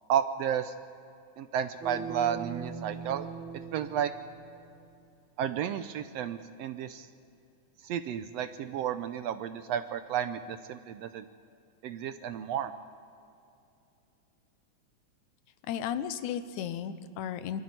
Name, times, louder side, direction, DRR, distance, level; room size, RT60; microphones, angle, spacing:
voice 1, 0.1-0.7 1.4-3.3 3.7-4.1 5.4-7.1 7.8-11.3 11.8-12.7, right 9 dB, 75° right, 10 dB, 1.6 m, -32 dB
sound 1, 1.8-4.9, right 5 dB, 45° right, 2.5 m, -41 dB
voice 2, 15.7-17.6, left 9 dB, 85° left, 12 dB, 2.3 m, -34 dB
23.0 x 13.5 x 9.5 m, 2.6 s
omnidirectional pair, 3.4 m